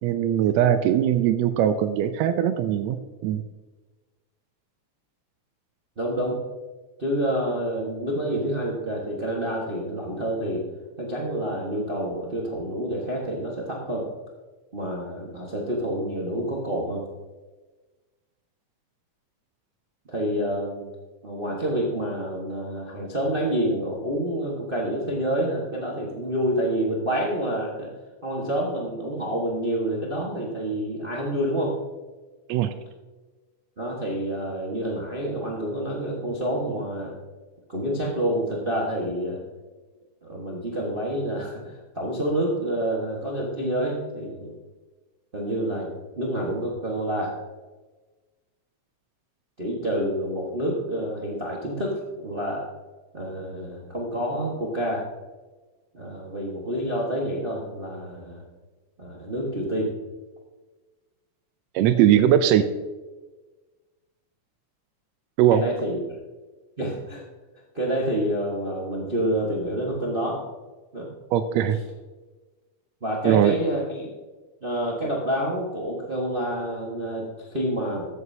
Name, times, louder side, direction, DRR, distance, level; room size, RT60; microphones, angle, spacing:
voice 1, 0.0-3.4 32.5-32.7 61.7-62.7 65.4-65.6 71.3-71.8 73.2-73.5, right 10 dB, 90° right, 10 dB, 1.5 m, -20 dB
voice 2, 6.0-6.4 7.0-10.6 11.0-14.1 14.7-17.0 20.1-20.8 21.2-27.9 28.2-31.7 33.8-37.1 37.7-39.4 40.2-44.5 45.3-47.3 49.6-52.6 53.1-55.0 55.9-58.4 59.0-59.9 65.5-66.0 66.8-67.2 67.7-70.4 70.9-71.1 73.0-74.1 74.6-78.1, right 1 dB, 65° right, -3 dB, 0.5 m, -28 dB
14.0 x 8.1 x 2.8 m, 1.2 s
omnidirectional pair, 3.7 m